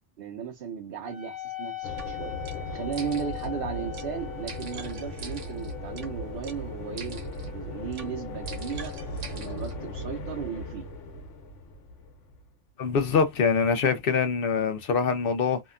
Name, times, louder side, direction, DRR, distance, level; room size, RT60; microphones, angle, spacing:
voice 1, 0.2-2.3 2.7-9.0 9.3-10.9, right 7 dB, 60° right, 0.6 m, -36 dB
Wind instrument woodwind instrument, 1.0-10.0, left 14 dB, 25° left, 0.5 m, -43 dB
sound 1, 1.8-12.5, left 1 dB, 85° left, 1.1 m, -37 dB
sound 2, 2.0-2.1 2.4-2.6 2.9-3.5 3.9-4.1 4.5-6.1 6.4-6.6 7.0-7.5 7.9-8.1 8.5-9.7, right 5 dB, 85° right, 1.1 m, -44 dB
voice 2, 12.8-15.6, left 5 dB, 55° left, 0.7 m, -24 dB
2.8 x 2.2 x 2.4 m
omnidirectional pair, 1.2 m